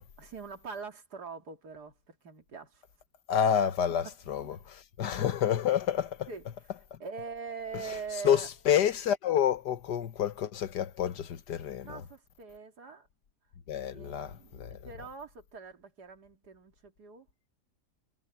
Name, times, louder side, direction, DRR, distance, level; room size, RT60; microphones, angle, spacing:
voice 1, 0.2-2.8 4.0-4.6 5.4-5.5 6.3-6.5 7.0-8.5 11.8-13.1 13.8-17.3, right 5 dB, 75° right, 2.8 m, -43 dB
voice 2, 3.3-6.3 8.2-12.0 13.7-14.8, left 9 dB, 85° left, 1.7 m, -29 dB
omnidirectional pair, 1.8 m